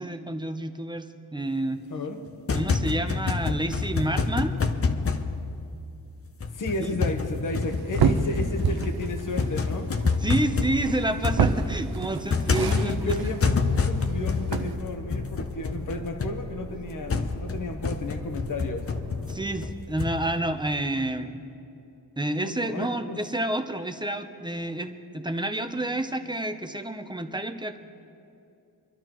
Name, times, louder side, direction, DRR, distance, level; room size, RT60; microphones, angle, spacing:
voice 1, 0.0-1.8 2.5-4.5 6.8-7.0 10.2-13.3 19.2-21.3 22.2-27.8, right 1 dB, 10° right, 7 dB, 0.7 m, -29 dB
voice 2, 1.9-2.2 6.5-9.9 12.6-18.9 22.4-23.2, left 2 dB, 50° left, 5 dB, 1.1 m, -33 dB
sound 1, 2.3-6.1 6.4-20.3, left 4 dB, 35° left, 0.7 m, -28 dB
sound 2, 7.6-14.7, right 5 dB, 65° right, 0.8 m, -29 dB
sound 3, 10.1-19.7, right 3 dB, 50° right, 1.3 m, -45 dB
26.0 x 12.0 x 3.0 m, 2.7 s
wide cardioid pair, 125°, 40 cm